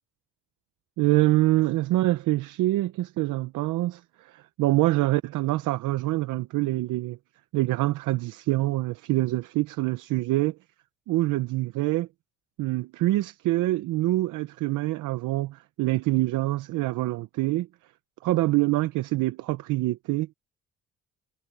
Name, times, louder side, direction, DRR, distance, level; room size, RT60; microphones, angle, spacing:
voice 1, 1.0-7.2 7.5-10.6 11.1-12.1 12.6-17.7 18.2-20.3, right 18 dB, 90° right, 0.7 m, -25 dB
cardioid pair, 90°, 30 cm